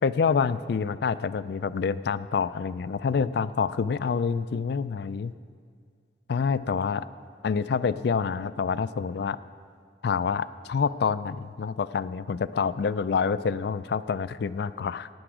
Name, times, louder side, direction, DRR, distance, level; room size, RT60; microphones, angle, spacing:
voice 1, 0.0-5.3 6.3-7.0 7.4-9.4 10.0-15.1, left 5 dB, 60° left, 15 dB, 0.4 m, -27 dB
16.0 x 10.0 x 4.9 m, 2.1 s
head